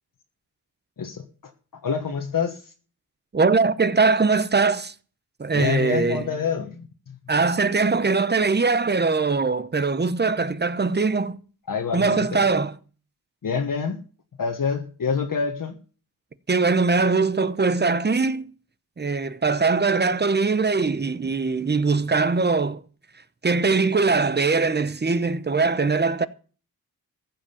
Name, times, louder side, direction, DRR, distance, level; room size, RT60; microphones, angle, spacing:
voice 1, 1.8-2.7 5.5-7.2 11.7-12.5 13.4-14.0 14.4-15.8, left 6 dB, 60° left, 1.5 m, -27 dB
voice 2, 3.3-4.9 5.4-6.3 7.3-11.4 11.9-12.8 16.5-18.5 19.0-22.8 23.4-26.3, right 4 dB, 25° right, 0.9 m, -21 dB
15.0 x 7.6 x 7.1 m
wide cardioid pair, 95°, 38 cm